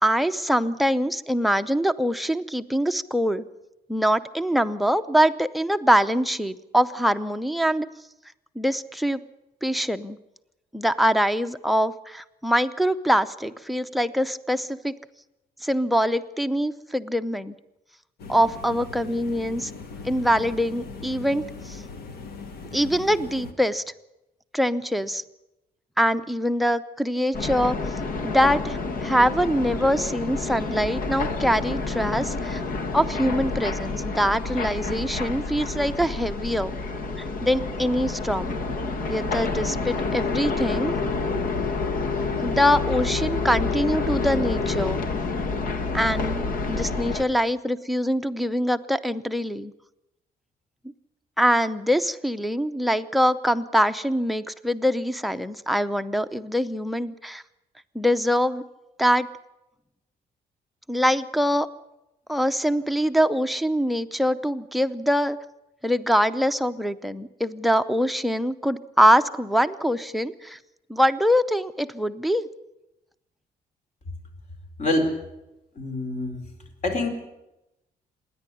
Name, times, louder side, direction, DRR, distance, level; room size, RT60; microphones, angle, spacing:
voice 1, 0.0-3.4 3.9-7.9 8.6-9.2 9.6-10.2 10.7-14.9 15.6-17.6 18.3-19.7 20.0-21.8 22.7-23.8 24.5-25.2 26.0-27.8 28.2-32.6 32.9-36.7 37.2-38.6 39.1-41.0 42.4-45.0 45.9-49.7 51.4-57.4 57.9-58.6 59.0-59.3 60.9-61.7 62.3-65.4 65.8-70.6 70.9-72.5, equal, ahead, 14 dB, 0.6 m, -23 dB
sound 1, 18.2-23.5, left 4 dB, 80° left, 2.0 m, -39 dB
sound 2, 27.3-47.2, left 3 dB, 65° left, 1.8 m, -29 dB
Telephone, 40.0-45.0, left 5 dB, 25° left, 0.9 m, -32 dB
voice 2, 74.8-75.2 75.8-76.4 76.8-77.1, left 2 dB, 50° left, 4 dB, 4.3 m, -25 dB
26.5 x 10.5 x 9.9 m, 0.95 s
cardioid pair, 155°, 16 cm